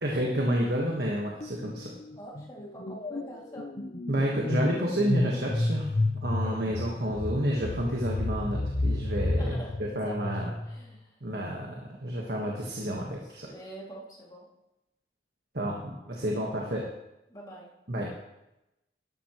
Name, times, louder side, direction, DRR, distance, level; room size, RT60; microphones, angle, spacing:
voice 1, 0.0-1.9 4.1-5.9 6.2-9.5 9.8-10.4 11.2-13.5 15.5-16.9 17.9-18.1, equal, 65° right, -2 dB, 1.5 m, -30 dB
sound 1, 1.4-1.7 2.0-10.8, left 2 dB, 40° left, 0.7 m, -31 dB
voice 2, 2.2-3.7 6.4-6.5 9.4-9.8 10.0-11.2 13.2-14.5 17.3-17.7, right 1 dB, 20° left, -4 dB, 2.5 m, -45 dB
12.5 x 12.5 x 3.1 m, 0.93 s
head